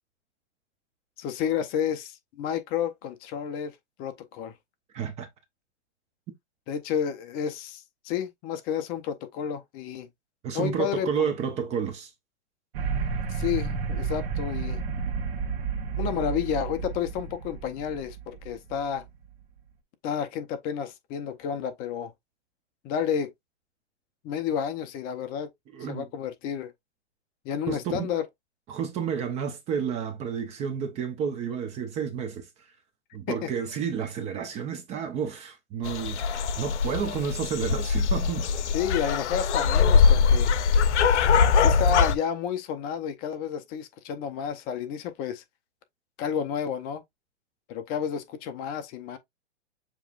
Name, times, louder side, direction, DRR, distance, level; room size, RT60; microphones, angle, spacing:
voice 1, 1.2-3.7 4.0-4.5 6.7-10.1 10.5-11.3 13.3-14.8 16.0-19.0 20.0-22.1 22.8-23.3 24.2-25.5 25.9-26.7 27.4-28.2 33.3-33.5 38.7-40.6 41.6-45.4 46.2-47.0 47.7-49.2, left 8 dB, 25° left, 0.6 m, -31 dB
voice 2, 4.9-5.3 10.4-12.1 25.7-26.1 27.7-28.2 28.7-32.5 33.1-38.5, right 7 dB, 20° right, 0.6 m, -31 dB
sound 1, 12.7-19.2, right 5 dB, 50° right, 1.3 m, -31 dB
sound 2, 35.8-42.1, left 6 dB, 70° left, 0.8 m, -22 dB
7.0 x 3.0 x 2.4 m
hypercardioid pair, 140°, 36 cm